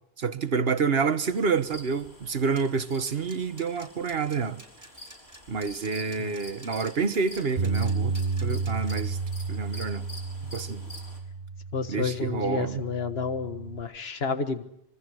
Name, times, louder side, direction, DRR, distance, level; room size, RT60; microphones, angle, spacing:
voice 1, 0.2-4.6 5.5-8.2 8.4-9.2 9.5-10.0 10.4-10.8 11.9-12.9, right 5 dB, 70° right, 1.4 m, -28 dB
cricket in field, 1.2-11.2, left 1 dB, 90° left, 5.2 m, -48 dB
sound 1, 2.5-8.9, right 1 dB, 15° right, 5.0 m, -49 dB
Bass guitar, 7.6-13.8, right 4 dB, 45° right, 1.3 m, -32 dB
voice 2, 11.7-14.6, left 5 dB, 75° left, 1.7 m, -30 dB
26.0 x 24.0 x 6.4 m
omnidirectional pair, 1.0 m